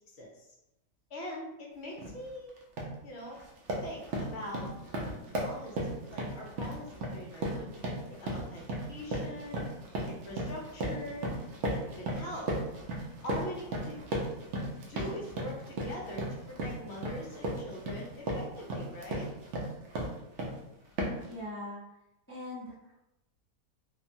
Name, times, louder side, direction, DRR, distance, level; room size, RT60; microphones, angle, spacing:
voice 1, 0.1-0.5 1.1-2.5 3.0-3.4 3.8-4.7 5.3-9.6 10.1-11.3 11.7-12.5 13.2-14.1 14.9-19.3, left 1 dB, 60° left, -2 dB, 0.8 m, -43 dB
sound 1, 2.0-2.2 2.6-3.0 3.3-20.6 21.0-21.3, right 1 dB, 65° right, 0.8 m, -35 dB
voice 2, 21.3-21.8 22.3-23.0, left 1 dB, 15° left, -9 dB, 0.5 m, -41 dB
3.0 x 2.1 x 2.6 m, 0.88 s
omnidirectional pair, 1.5 m